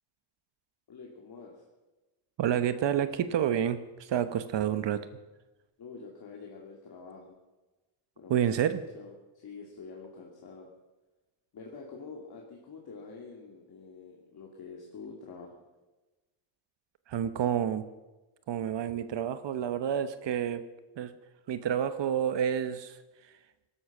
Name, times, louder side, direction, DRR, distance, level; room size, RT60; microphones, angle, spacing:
voice 1, 0.9-1.6 5.8-7.4 8.2-10.7 11.5-15.6, left 4 dB, 50° left, -2 dB, 2.7 m, -47 dB
voice 2, 2.4-5.0 8.3-8.8 17.1-17.8 18.5-20.6 21.0-21.1 21.5-23.0, right 9 dB, 60° right, 12 dB, 1.0 m, -29 dB
18.5 x 13.0 x 6.0 m, 1.1 s
cardioid pair, 120°, 48 cm